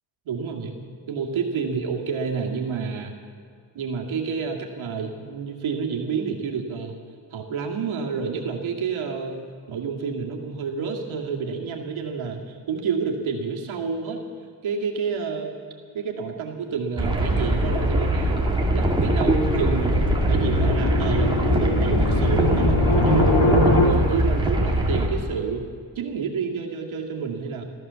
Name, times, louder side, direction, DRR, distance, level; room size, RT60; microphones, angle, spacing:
voice 1, 0.3-0.8 1.1-3.1 3.7-7.0 7.3-9.4 9.7-14.2 14.6-15.6 15.9-19.9 20.3-23.4 23.6-25.7 26.0-27.6, right 5 dB, 80° right, 1 dB, 2.2 m, -29 dB
sound 1, 17.0-25.1, right 1 dB, 10° right, 2.0 m, -22 dB
sound 2, 18.8-23.9, left 2 dB, 80° left, 2.3 m, -23 dB
14.5 x 14.0 x 6.9 m, 2.1 s
wide cardioid pair, 140°, 47 cm